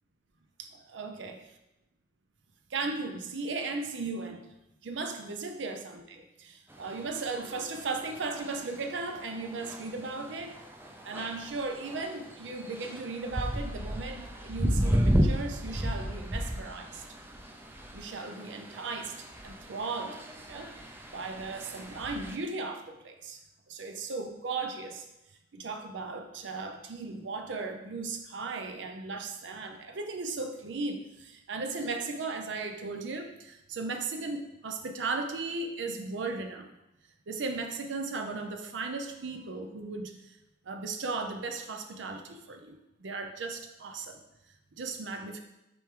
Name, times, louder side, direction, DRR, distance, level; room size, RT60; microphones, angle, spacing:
voice 1, 0.6-1.4 2.7-4.5 4.8-10.6 11.0-17.0 17.9-20.7 21.1-23.4 23.7-25.1 25.5-36.7 37.3-40.4 40.7-44.2 44.8-45.4, right 3 dB, 70° right, 5 dB, 0.5 m, -36 dB
sound 1, 6.7-22.4, equal, 10° right, 0.5 m, -34 dB
6.1 x 4.5 x 3.6 m, 0.91 s
head